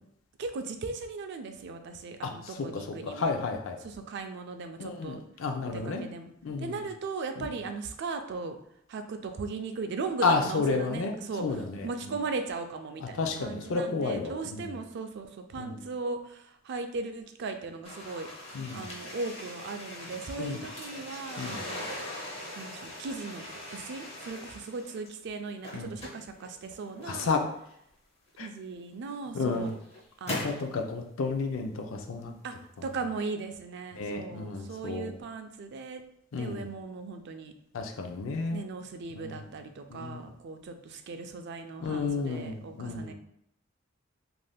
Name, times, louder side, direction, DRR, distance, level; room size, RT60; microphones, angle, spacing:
voice 1, 0.4-3.4 3.8-5.2 5.7-6.3 6.6-8.6 8.9-18.3 18.7-21.8 22.6-23.5 23.7-27.3 28.4-29.7 30.2-30.7 32.4-32.6 32.8-36.0 36.4-37.5 38.5-43.1, right 4 dB, 60° right, 7 dB, 0.3 m, -38 dB
voice 2, 2.2-3.8 4.8-6.0 6.4-6.8 7.4-7.5 10.2-12.1 13.1-14.7 15.6-15.8 18.5-18.8 20.4-20.6 21.4-21.6 25.7-25.9 27.1-27.4 28.4-28.5 29.3-29.7 30.3-32.3 34.0-35.2 36.3-36.7 37.7-38.6 39.2-39.5 39.9-40.2 41.8-43.1, left 4 dB, 75° left, 4 dB, 0.4 m, -32 dB
sound 1, 17.8-25.1 25.5-27.5 28.4-28.5 29.2-30.7, left 1 dB, 30° left, 0.7 m, -41 dB
3.4 x 2.5 x 2.2 m, 0.73 s
head